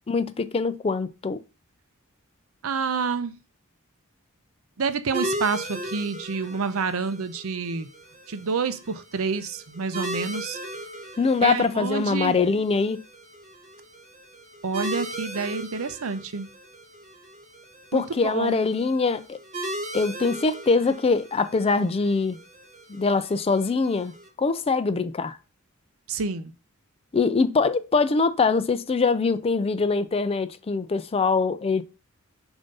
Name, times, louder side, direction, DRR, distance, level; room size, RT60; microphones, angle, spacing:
voice 1, 0.1-1.4 11.2-13.0 17.9-19.4 19.9-22.4 22.9-25.4 27.1-31.8, left 4 dB, 25° left, 0.4 m, -23 dB
voice 2, 2.6-3.3 4.8-7.9 8.3-10.6 11.4-12.4 14.6-16.5 17.9-18.6 26.1-26.5, right 5 dB, 75° right, 0.6 m, -28 dB
sound 1, 5.1-24.3, right 1 dB, 35° right, 1.2 m, -38 dB
6.9 x 2.7 x 5.3 m
head